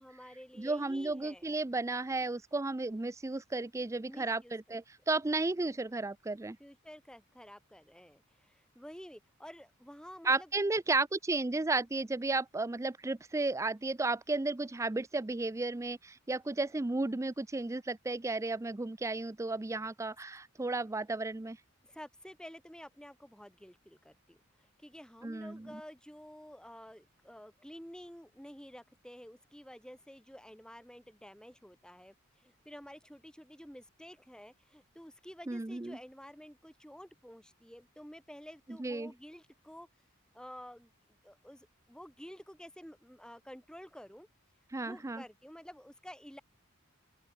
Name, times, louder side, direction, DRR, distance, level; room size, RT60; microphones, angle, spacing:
voice 1, 0.0-1.5 4.1-4.8 6.6-10.5 21.8-39.9 40.3-40.9 41.2-44.3 44.8-46.4, equal, 5° left, 6.0 m, -51 dB
voice 2, 0.6-6.6 10.3-21.6 25.2-25.8 35.5-36.0 38.8-39.1 44.7-45.2, right 3 dB, 15° right, 0.4 m, -33 dB
open air
head